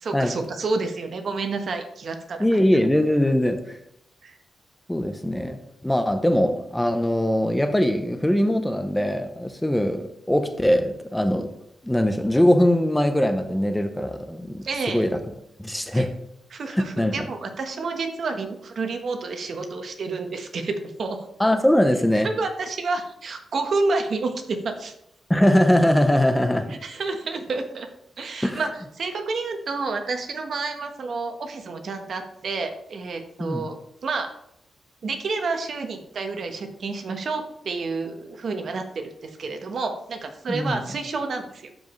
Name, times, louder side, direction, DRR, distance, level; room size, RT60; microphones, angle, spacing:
voice 1, 0.0-2.6 4.2-4.4 14.6-15.0 15.9-16.1 16.5-21.2 22.2-24.9 26.8-27.9 28.2-28.7 29.0-33.8 34.0-34.3 35.0-41.7, right 3 dB, 60° right, 5 dB, 1.2 m, -29 dB
voice 2, 2.4-3.8 4.9-11.5 11.8-15.2 15.6-16.1 16.7-17.2 21.4-22.3 25.3-26.7 28.4-28.6 33.4-33.7 40.5-40.8, left 1 dB, 5° left, 8 dB, 0.7 m, -21 dB
12.0 x 4.9 x 3.2 m, 0.76 s
cardioid pair, 90°, 0 cm